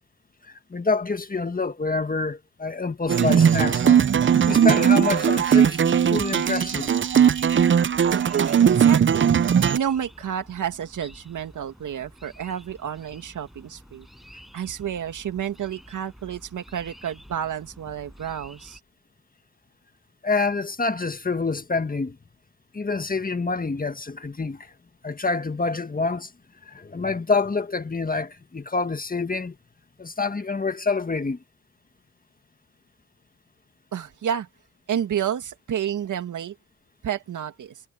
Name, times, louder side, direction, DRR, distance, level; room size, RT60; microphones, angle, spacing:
voice 1, 0.5-4.0 4.4-5.8 6.1-6.9 20.2-22.2 22.7-24.7 25.0-26.3 26.7-29.6 30.0-31.4, left 4 dB, 25° left, 1.8 m, -27 dB
sound 1, 3.0-18.8, equal, ahead, 7.1 m, -49 dB
sound 2, 3.1-9.8, right 8 dB, 35° right, 0.7 m, -18 dB
voice 2, 8.1-9.4 9.7-14.1 14.5-18.8 33.9-34.5 34.9-36.6 37.0-37.8, right 9 dB, 70° right, 2.3 m, -30 dB
cardioid pair, 65°, 32 cm